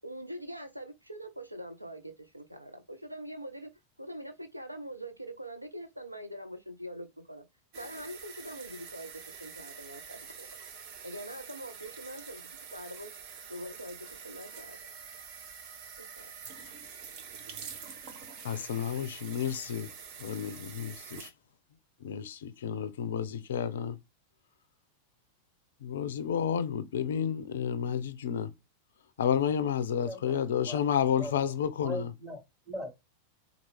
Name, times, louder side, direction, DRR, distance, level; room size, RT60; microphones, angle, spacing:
voice 1, 0.0-3.7 4.0-7.5 7.8-10.5 11.0-13.2 13.5-14.8 16.0-16.3, right 1 dB, 85° right, 0.5 m, -43 dB
sound 1, 7.7-21.3, right 6 dB, 45° right, 0.8 m, -46 dB
voice 2, 18.4-19.9 20.2-21.3 22.0-24.0 25.8-28.5 29.2-32.1, left 8 dB, 60° left, 0.4 m, -31 dB
voice 3, 30.1-30.8 31.2-31.3 31.8-32.9, equal, 25° right, 2.8 m, -40 dB
4.5 x 2.3 x 3.2 m
figure-of-eight pair, 90°, 0 cm